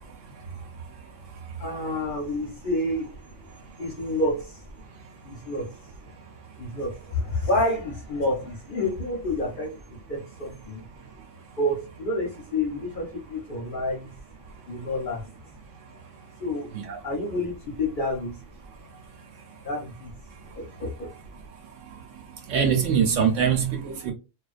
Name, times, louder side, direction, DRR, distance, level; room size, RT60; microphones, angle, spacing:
voice 1, 1.6-3.1 3.4-4.6 5.2-5.7 6.1-6.2 6.6-9.8 10.1-10.8 11.6-14.1 14.7-15.2 16.4-16.7 17.0-18.4 19.6-20.1 20.6-21.1, left 1 dB, 50° left, 0.7 m, -29 dB
voice 2, 22.5-24.1, right 7 dB, 70° right, 0.9 m, -23 dB
2.4 x 2.2 x 2.3 m
omnidirectional pair, 1.4 m